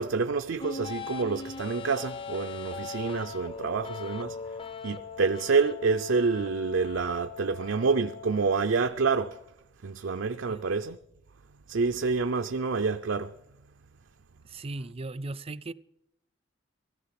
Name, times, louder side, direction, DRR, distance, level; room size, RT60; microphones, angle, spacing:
voice 1, 0.0-4.6 4.8-9.4 9.8-11.0 11.7-13.3, right 4 dB, 85° right, 0.6 m, -28 dB
sound 1, 0.6-8.6, left 5 dB, 30° left, 0.5 m, -40 dB
voice 2, 10.3-10.7 14.4-15.7, right 2 dB, 30° right, 0.5 m, -38 dB
16.0 x 14.5 x 5.9 m
head